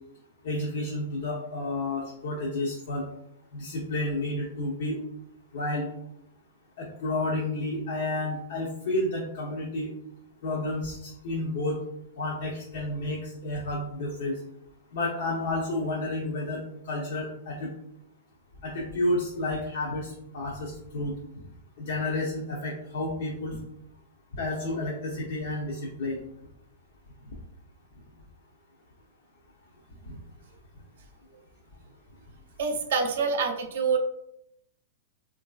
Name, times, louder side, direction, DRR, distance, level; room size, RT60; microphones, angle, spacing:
voice 1, 0.4-3.1 3.5-5.0 5.5-5.9 6.8-9.9 10.4-11.8 12.2-14.4 14.9-17.7 18.6-21.1 21.8-23.6 24.3-26.2 30.1-30.2, left 2 dB, 70° left, -2 dB, 0.6 m, -31 dB
voice 2, 32.6-34.0, right 5 dB, 70° right, 3 dB, 0.5 m, -26 dB
3.0 x 2.6 x 2.3 m, 0.77 s
hypercardioid pair, 125°, 0 cm